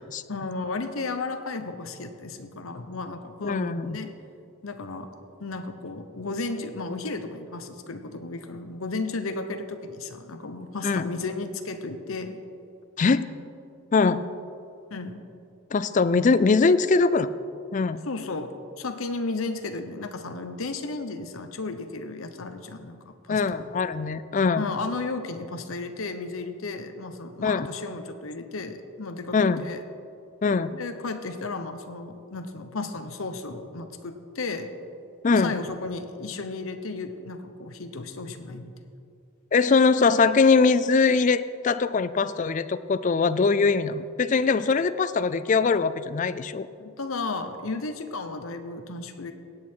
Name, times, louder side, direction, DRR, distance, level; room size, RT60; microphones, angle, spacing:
voice 1, 0.3-4.1 4.6-5.1 5.4-12.4 14.9-15.2 18.1-23.4 24.6-29.8 30.7-34.7 35.3-38.7 46.8-49.3, left 3 dB, 70° left, 8 dB, 0.9 m, -34 dB
voice 2, 3.4-4.0 10.8-11.1 13.0-13.3 13.9-14.2 15.7-17.3 17.7-18.0 23.3-24.7 27.4-27.7 29.3-29.7 30.4-30.7 35.2-35.6 39.5-46.7, left 4 dB, 35° left, 14 dB, 0.3 m, -22 dB
16.5 x 8.5 x 4.5 m, 2.5 s
head